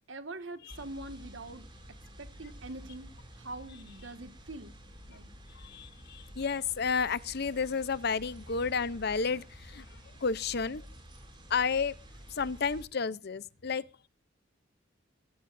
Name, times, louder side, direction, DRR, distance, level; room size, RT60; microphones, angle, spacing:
voice 1, 0.1-1.7 2.2-3.1 3.4-4.7 5.1-5.3, right 2 dB, 80° right, 1.8 m, -43 dB
sound 1, 0.7-12.8, equal, 25° right, 7.3 m, -50 dB
voice 2, 5.5-10.9 11.5-12.0 12.3-13.8, left 5 dB, 60° left, 0.8 m, -32 dB
21.5 x 15.0 x 2.7 m
head